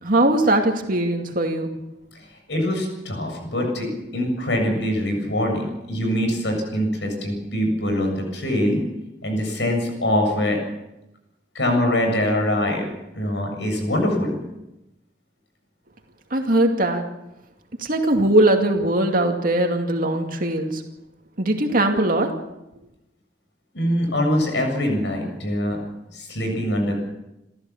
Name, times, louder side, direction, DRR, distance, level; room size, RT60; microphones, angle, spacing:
voice 1, 0.0-1.7 16.3-17.0 17.8-20.8 21.4-22.3, right 1 dB, 55° right, 3 dB, 2.4 m, -20 dB
voice 2, 2.1-3.9 4.1-8.8 9.2-10.6 11.5-12.9 13.1-14.4 23.7-25.8 26.1-26.9, left 1 dB, 80° left, 3 dB, 7.4 m, -23 dB
29.0 x 14.5 x 7.3 m, 0.93 s
head